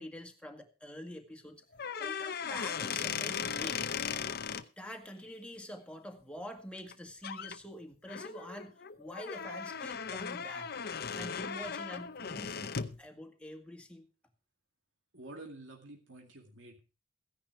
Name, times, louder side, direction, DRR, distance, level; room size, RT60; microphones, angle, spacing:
voice 1, 0.0-1.6 2.0-3.9 4.8-10.8 11.1-14.1, equal, 5° left, 3 dB, 1.9 m, -46 dB
sound 1, 1.7-4.6 6.8-6.9 7.2-7.6 8.1-13.0, left 6 dB, 55° left, 0.8 m, -37 dB
voice 2, 15.1-16.8, right 2 dB, 85° right, 2 dB, 2.3 m, -49 dB
15.5 x 10.5 x 4.6 m, 0.34 s
head